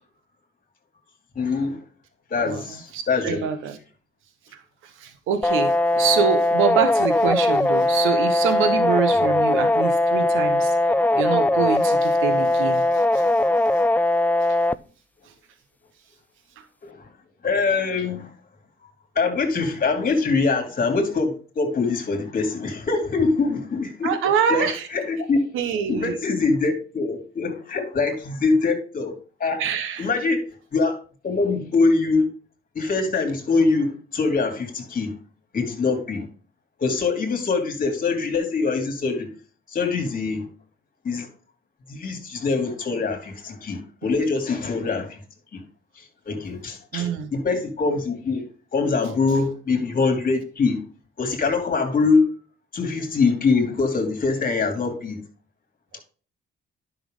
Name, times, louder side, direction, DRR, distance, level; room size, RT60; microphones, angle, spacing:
voice 1, 1.3-1.8 2.3-3.4 16.8-17.0 17.4-18.3 19.1-24.1 24.5-25.4 25.9-29.1 29.4-29.6 30.0-30.4 30.7-31.0 31.2-32.2 32.7-35.1 35.5-36.3 36.8-39.3 39.7-40.5 41.0-41.3 41.9-45.2 45.5-45.6 46.0-48.4 48.7-50.8 51.2-52.3 52.7-55.2, left 4 dB, 45° left, 2.8 m, -23 dB
voice 2, 2.4-3.8 5.0-10.8 11.1-13.2 24.0-24.9 25.5-26.2 29.6-30.1 46.9-47.3, right 7 dB, 90° right, 1.1 m, -25 dB
sound 1, 5.4-14.7, left 2 dB, 10° left, 0.3 m, -20 dB
10.5 x 6.1 x 3.7 m
cardioid pair, 90°, 20 cm